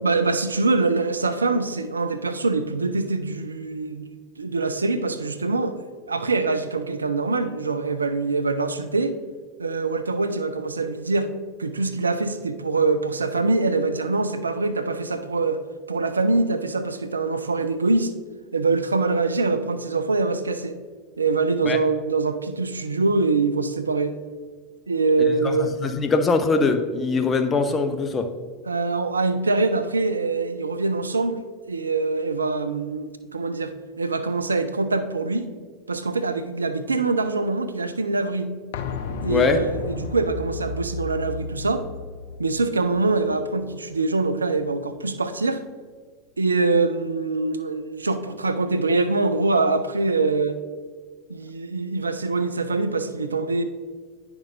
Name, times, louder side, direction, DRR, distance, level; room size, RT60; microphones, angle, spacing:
voice 1, 0.0-4.1 4.4-5.8 6.1-9.1 9.6-11.3 11.6-15.6 15.9-18.1 18.5-20.8 21.2-24.2 24.9-25.8 28.7-35.5 35.9-38.5 39.2-41.8 42.4-45.6 46.4-50.6 51.3-53.6, right 3 dB, 85° right, 11 dB, 0.4 m, -24 dB
voice 2, 25.4-28.3 39.3-39.6, left 4 dB, 25° left, 7 dB, 0.7 m, -22 dB
sound 1, 38.7-44.4 44.7-44.8, left 4 dB, 65° left, 0.5 m, -34 dB
10.0 x 6.0 x 2.6 m, 1.5 s
figure-of-eight pair, 85°, 0 cm